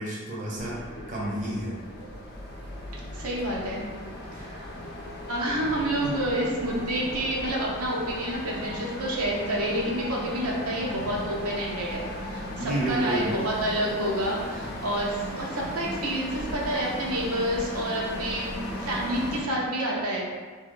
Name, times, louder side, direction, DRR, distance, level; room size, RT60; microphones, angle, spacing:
voice 1, 0.0-1.8 4.3-4.5 6.0-6.2 12.6-13.4, right 1 dB, 35° right, -5 dB, 0.7 m, -30 dB
sound 1, 0.6-19.4, equal, 45° left, 0.6 m, -37 dB
voice 2, 3.1-3.9 4.3-4.7 5.3-20.2, right 1 dB, 85° right, -4 dB, 0.8 m, -29 dB
3.3 x 2.6 x 3.7 m, 1.4 s
head